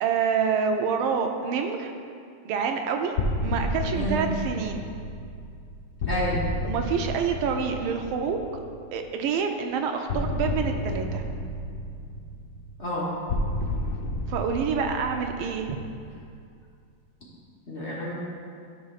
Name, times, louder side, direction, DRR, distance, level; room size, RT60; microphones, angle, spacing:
voice 1, 0.0-1.9 2.4-3.1 3.4-4.8 6.6-8.4 8.9-11.2 14.3-15.8, right 6 dB, 80° right, 5 dB, 1.4 m, -27 dB
sound 1, 3.2-8.9 10.1-16.4, left 1 dB, 75° left, 0.7 m, -31 dB
voice 2, 3.9-4.2 6.1-6.4 12.8-13.1 17.7-18.1, equal, 40° left, -7 dB, 1.2 m, -29 dB
12.5 x 5.7 x 2.4 m, 2.3 s
omnidirectional pair, 2.3 m